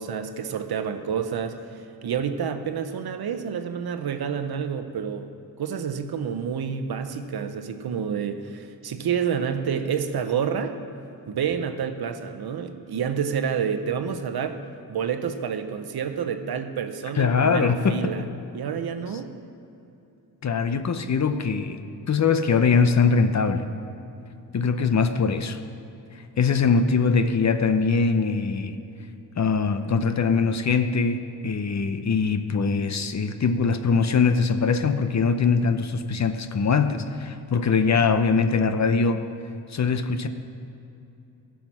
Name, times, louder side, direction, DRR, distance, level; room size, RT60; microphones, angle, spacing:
voice 1, 0.0-1.6 2.0-5.3 5.6-10.8 11.3-14.6 14.9-18.2 18.5-19.3, right 7 dB, 65° right, 8 dB, 0.9 m, -28 dB
voice 2, 17.2-18.1 20.4-21.8 22.1-23.6 24.5-25.6 26.4-28.8 29.4-39.2 39.7-40.3, left 5 dB, 40° left, 9 dB, 0.7 m, -22 dB
15.0 x 5.8 x 6.0 m, 2.8 s
cardioid pair, 70°, 41 cm